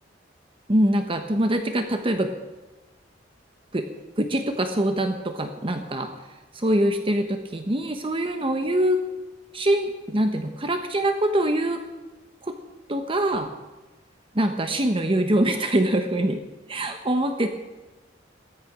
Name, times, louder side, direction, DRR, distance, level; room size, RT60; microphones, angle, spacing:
voice 1, 0.7-2.3 3.7-3.9 4.2-6.1 6.5-9.0 9.5-11.8 12.4-12.6 12.9-13.5 14.3-16.4 16.7-17.5, right 1 dB, 30° right, 6 dB, 1.0 m, -24 dB
17.0 x 13.5 x 6.1 m, 1.1 s
head